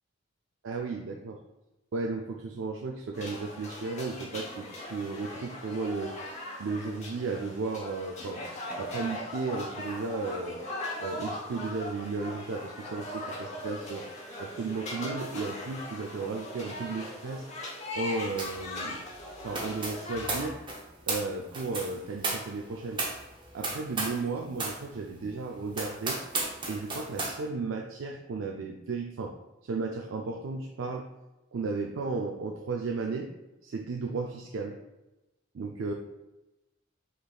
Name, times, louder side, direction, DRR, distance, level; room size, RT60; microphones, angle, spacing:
voice 1, 0.6-1.4 1.9-6.1 6.6-8.4 8.8-10.6 11.0-14.1 14.4-17.4 18.0-19.0 19.4-20.6 21.1-23.0 23.5-26.2 26.7-29.4 29.6-31.1 31.5-33.3 33.6-34.8 35.5-35.9, right 3 dB, 70° right, 1 dB, 0.4 m, -34 dB
sound 1, 3.1-20.5, left 1 dB, 35° left, 0.9 m, -39 dB
sound 2, 18.4-18.7 18.9-24.3 24.6-24.8 25.3-25.4 25.7-27.4, right 3 dB, 25° right, 0.8 m, -34 dB
5.1 x 3.9 x 2.3 m, 1.0 s
head